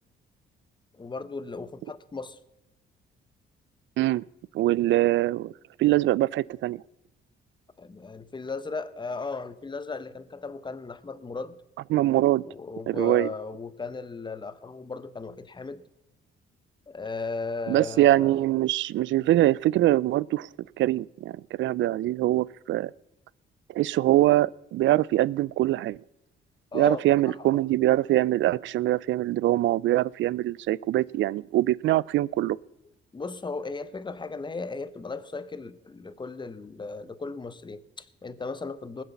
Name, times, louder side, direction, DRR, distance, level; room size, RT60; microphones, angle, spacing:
voice 1, 0.9-2.4 5.1-5.2 7.8-11.5 12.4-15.8 16.9-18.3 26.7-27.5 33.1-39.0, left 4 dB, 25° left, 1.0 m, -36 dB
voice 2, 4.5-5.5 5.8-6.8 11.9-12.4 12.9-13.3 17.7-20.5 20.8-22.9 23.7-26.0 26.7-32.6, right 15 dB, 70° right, 0.4 m, -23 dB
20.0 x 7.5 x 7.0 m
cardioid pair, 90°, 20 cm